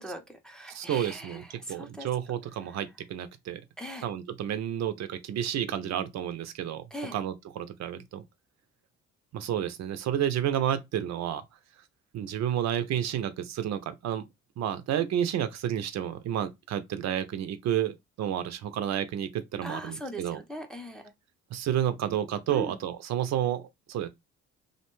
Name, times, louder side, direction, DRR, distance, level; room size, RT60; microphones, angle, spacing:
voice 1, 0.0-1.4 1.7-2.1 3.8-4.0 6.9-7.1 19.6-21.0 22.5-22.8, right 1 dB, ahead, 0.5 m, -39 dB
voice 2, 0.7-3.6 4.0-6.8 7.1-8.2 9.3-11.4 12.1-14.3 14.6-20.4 21.5-24.1, right 10 dB, 60° right, 0.5 m, -30 dB
2.6 x 2.1 x 3.0 m
cardioid pair, 90°, 30 cm